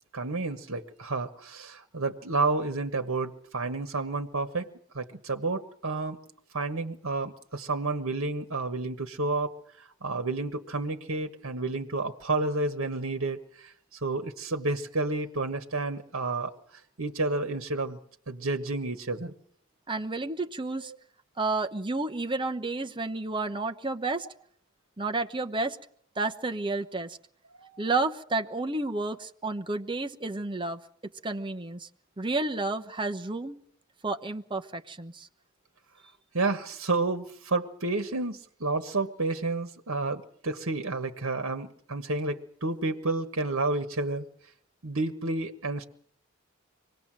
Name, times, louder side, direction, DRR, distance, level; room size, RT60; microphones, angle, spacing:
voice 1, 0.1-4.7 4.9-6.2 6.5-16.5 17.0-18.0 18.3-19.3 20.9-21.0 27.6-27.8 36.3-44.3 44.8-45.9, right 3 dB, 75° right, 7 dB, 1.3 m, -30 dB
voice 2, 19.9-20.9 21.4-24.3 25.0-25.8 26.2-27.2 27.8-30.8 31.2-31.9 32.2-33.6 34.0-35.3, right 3 dB, 25° right, 5 dB, 1.0 m, -31 dB
24.5 x 19.0 x 7.6 m, 0.62 s
head